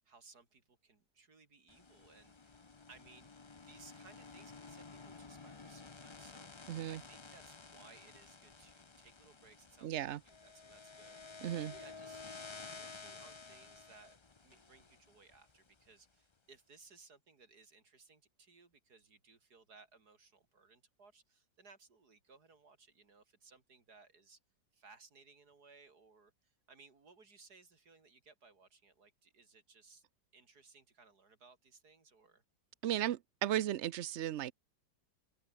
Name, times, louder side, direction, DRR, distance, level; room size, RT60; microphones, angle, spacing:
voice 1, 0.0-2.6 2.9-12.2 12.6-24.4 24.7-30.1 30.3-32.4, right 4 dB, 60° right, 3.6 m, -62 dB
sound 1, 1.7-15.9, left 4 dB, 40° left, 0.4 m, -53 dB
voice 2, 6.7-7.0 9.8-10.2 11.4-11.7 32.8-34.5, right 12 dB, 75° right, 0.6 m, -35 dB
open air
omnidirectional pair, 2.0 m